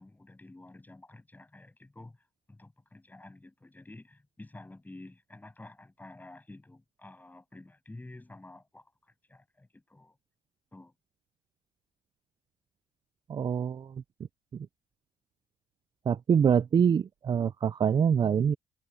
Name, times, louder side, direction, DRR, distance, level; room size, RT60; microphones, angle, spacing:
voice 1, 0.0-2.2 2.5-10.1 10.7-10.9, left 2 dB, 10° left, 7.5 m, -50 dB
voice 2, 13.3-13.9 14.5-14.7 16.1-18.6, right 7 dB, 30° right, 0.4 m, -25 dB
cardioid pair, 95°, 14 cm